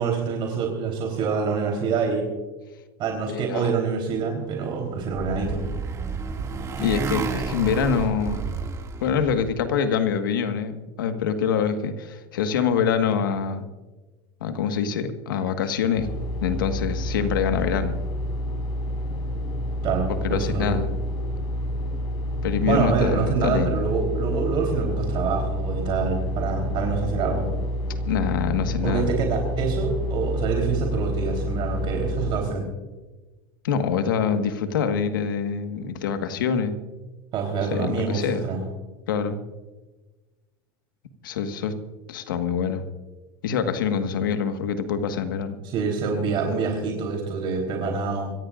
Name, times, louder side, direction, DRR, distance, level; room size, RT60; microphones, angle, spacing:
voice 1, 0.0-2.3 3.0-5.6 19.8-20.8 22.6-27.5 28.8-32.7 37.3-38.6 45.6-48.3, right 5 dB, 50° right, 2 dB, 3.7 m, -26 dB
voice 2, 3.3-3.7 6.8-8.4 9.0-13.7 14.4-16.1 16.4-17.9 20.2-20.9 22.4-23.8 28.1-29.1 33.6-36.7 37.7-38.4 39.1-39.4 41.2-41.7 42.1-42.8 43.4-45.6, left 7 dB, 90° left, 8 dB, 1.6 m, -25 dB
Motorcycle, 4.6-9.6, right 5 dB, 30° right, 2.2 m, -31 dB
sound 1, 16.0-32.3, equal, 50° left, 5.2 m, -28 dB
25.5 x 15.5 x 2.5 m, 1.2 s
supercardioid pair, 110°, 11 cm